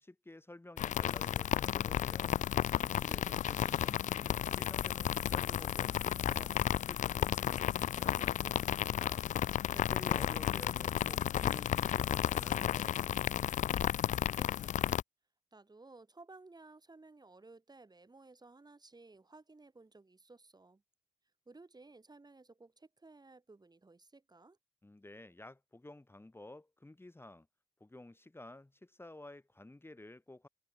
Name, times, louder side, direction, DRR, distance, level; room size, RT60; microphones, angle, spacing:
voice 1, 0.0-13.0 24.8-27.5 27.8-30.5, left 2 dB, 15° left, 2.7 m, -53 dB
sound 1, 0.8-15.0, left 11 dB, 65° left, 0.4 m, -33 dB
voice 2, 14.1-14.9 15.5-20.8 21.5-24.6, right 3 dB, 30° right, 7.3 m, -57 dB
supercardioid pair, 50°, 14 cm